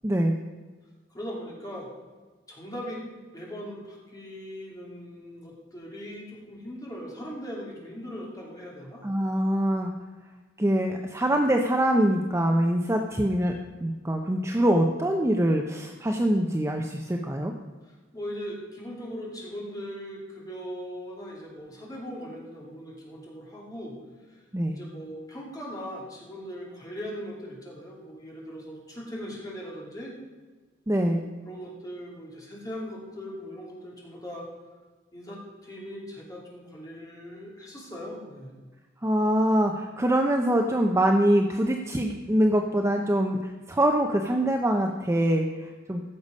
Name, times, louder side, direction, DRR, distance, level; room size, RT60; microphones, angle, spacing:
voice 1, 0.0-0.3 9.0-9.9 10.6-13.5 13.8-17.5 24.5-24.8 30.9-31.2 39.0-46.0, right 1 dB, 15° right, 3 dB, 0.6 m, -24 dB
voice 2, 1.1-1.9 2.5-3.0 3.3-9.0 18.1-23.9 24.3-24.4 24.7-30.1 31.0-31.2 31.4-34.4 35.1-38.5, equal, 20° left, -3 dB, 2.9 m, -39 dB
15.0 x 6.7 x 5.4 m, 1.3 s
head